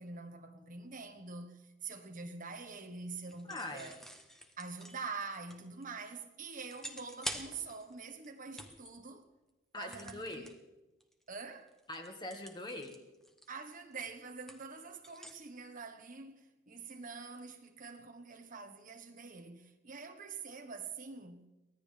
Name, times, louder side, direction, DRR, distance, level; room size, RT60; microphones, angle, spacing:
voice 1, 0.0-4.0 4.6-9.3 9.8-10.5 11.3-11.7 13.5-21.4, right 4 dB, 40° right, 1.3 m, -45 dB
sound 1, 3.3-6.1 6.7-8.0 8.2-9.0 9.8-10.6 11.0-11.2 11.5-15.4, equal, ahead, 1.2 m, -47 dB
voice 2, 3.5-3.9 9.7-10.5 11.9-13.0, left 2 dB, 20° left, 1.7 m, -42 dB
23.5 x 17.5 x 3.5 m
head